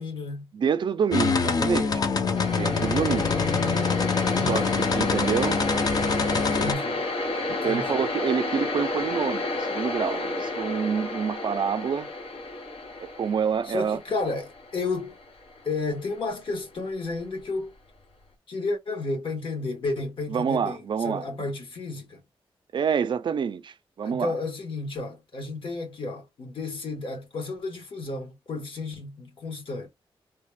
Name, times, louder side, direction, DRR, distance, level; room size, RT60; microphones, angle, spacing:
voice 1, 0.0-0.5 3.1-5.4 6.4-7.1 7.5-8.0 13.7-15.1 15.6-17.7 18.5-22.2 24.0-29.9, left 3 dB, 65° left, 1.5 m, -33 dB
voice 2, 0.5-2.0 2.6-3.3 4.3-5.6 7.5-12.1 13.0-14.0 20.3-21.3 22.7-24.3, right 7 dB, 55° right, 0.4 m, -27 dB
sound 1, 1.1-6.7, left 5 dB, 40° left, 0.6 m, -25 dB
sound 2, 2.3-16.2, left 2 dB, 85° left, 1.4 m, -31 dB
3.2 x 2.3 x 3.3 m
wide cardioid pair, 135°, 10 cm